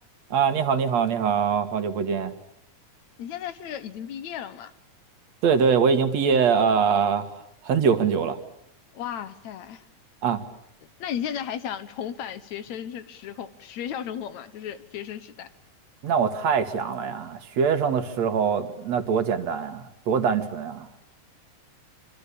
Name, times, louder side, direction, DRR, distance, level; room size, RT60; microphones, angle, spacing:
voice 1, 0.3-2.3 5.4-7.3 7.6-8.4 10.2-10.4 16.0-20.9, right 6 dB, 65° right, 8 dB, 2.9 m, -23 dB
voice 2, 3.2-4.7 8.9-9.8 11.0-15.5, left 9 dB, 70° left, 14 dB, 2.5 m, -34 dB
26.5 x 25.5 x 8.5 m, 0.74 s
omnidirectional pair, 3.4 m